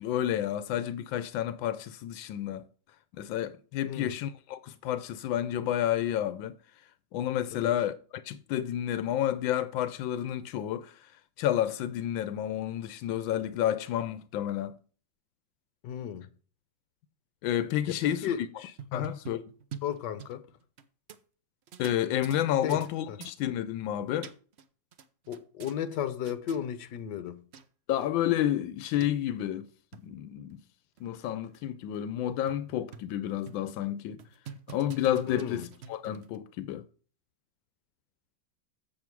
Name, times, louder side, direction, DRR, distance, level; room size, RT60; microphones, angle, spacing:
voice 1, 0.0-2.6 3.2-6.5 7.1-10.9 11.4-14.7 17.4-18.3 18.9-19.4 21.8-24.3 27.9-29.7 30.0-30.6 31.0-34.2 34.7-36.8, left 11 dB, 85° left, 1.4 m, -30 dB
voice 2, 15.8-16.3 17.9-19.1 19.8-20.4 22.6-22.8 23.1-23.2 25.3-27.4 35.3-35.7, left 9 dB, 70° left, 1.4 m, -34 dB
sound 1, 18.6-20.8 21.1-21.2 21.7-22.9 23.2-23.4 24.0-24.7 24.9-26.0 26.2-26.6 27.3-27.4 27.5-27.7 28.0-28.1 28.4-28.5 29.0-29.1 29.7-30.0 30.5-30.6 31.0-31.1 31.5-31.6 31.9-32.0 32.5-33.1 33.5-33.7 34.2-36.4, right 7 dB, 70° right, 0.6 m, -46 dB
7.5 x 7.2 x 4.6 m
omnidirectional pair, 2.1 m